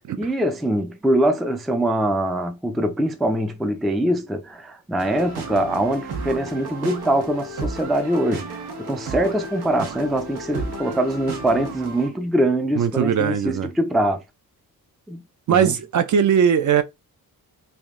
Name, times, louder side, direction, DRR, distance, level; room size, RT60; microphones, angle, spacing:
voice 1, 0.2-14.2 15.1-15.2 15.5-15.7, right 1 dB, ahead, 0.3 m, -23 dB
sound 1, 5.0-12.1, right 3 dB, 85° right, 1.2 m, -33 dB
voice 2, 12.7-13.7 15.5-16.8, right 8 dB, 50° right, 0.5 m, -19 dB
3.5 x 2.6 x 3.6 m
wide cardioid pair, 175°, 38 cm